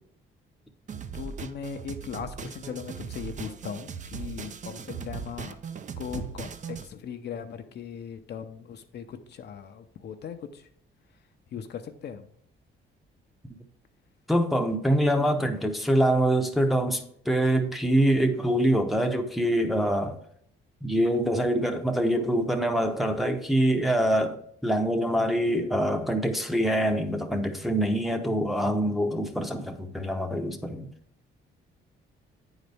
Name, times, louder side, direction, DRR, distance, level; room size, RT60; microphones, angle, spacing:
sound 1, 0.9-6.9, right 7 dB, 40° right, 0.5 m, -39 dB
voice 1, 1.1-5.6 6.0-10.7 11.5-12.3, left 7 dB, 60° left, 0.6 m, -38 dB
voice 2, 14.3-20.2 20.8-30.9, right 1 dB, ahead, 0.7 m, -25 dB
9.1 x 4.0 x 3.4 m
cardioid pair, 90°, 20 cm